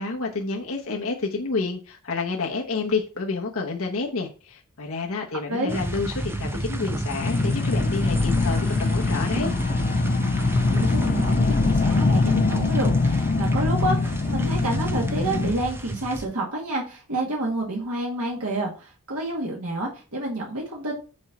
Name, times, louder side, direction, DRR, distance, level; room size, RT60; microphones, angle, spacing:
voice 1, 0.0-9.5, left 4 dB, 70° left, 1.0 m, -29 dB
sound 1, 5.7-16.3, right 1 dB, 10° right, 0.7 m, -30 dB
sound 2, 7.2-15.5, left 4 dB, 40° left, 0.4 m, -23 dB
voice 2, 10.6-20.9, right 2 dB, 85° right, 1.9 m, -29 dB
6.3 x 4.3 x 5.9 m
head